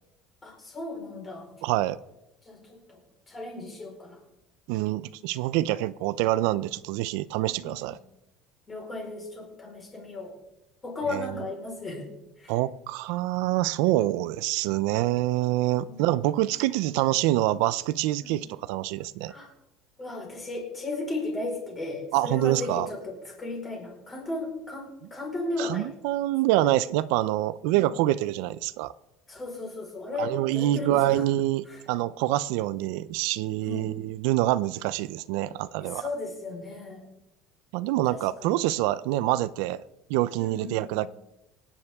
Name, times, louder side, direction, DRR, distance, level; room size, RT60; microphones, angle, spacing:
voice 1, 0.4-1.5 2.4-3.0 3.3-4.2 7.4-7.7 8.7-10.3 10.8-12.1 12.4-12.5 15.8-16.0 18.2-18.4 19.3-19.5 20.0-25.9 27.7-27.8 29.3-31.2 31.7-31.8 33.6-33.9 35.8-37.1 38.1-38.6 40.4-41.1, left 2 dB, 15° left, -1 dB, 4.5 m, -35 dB
voice 2, 1.6-2.0 4.7-8.0 11.1-11.3 12.5-19.3 22.1-22.9 25.6-28.9 30.2-36.0 37.7-39.8 40.1-41.1, right 15 dB, 75° right, 16 dB, 0.4 m, -26 dB
24.5 x 9.8 x 3.6 m, 0.93 s
cardioid pair, 175°, 0 cm